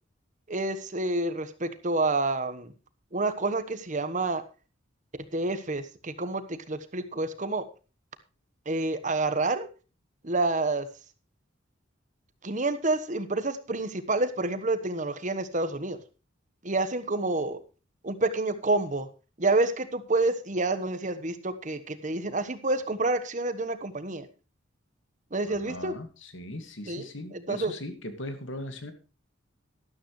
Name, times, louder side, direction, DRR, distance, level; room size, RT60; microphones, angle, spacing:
voice 1, 0.5-2.7 3.1-4.4 5.3-7.6 8.7-9.7 10.2-10.9 12.4-16.0 16.6-17.6 18.0-19.1 19.4-24.3 25.3-25.9 26.9-27.1 27.5-27.7, right 2 dB, 40° right, 12 dB, 1.2 m, -28 dB
voice 2, 25.5-28.9, left 1 dB, 75° left, 9 dB, 2.1 m, -39 dB
13.0 x 12.5 x 3.1 m, 0.33 s
head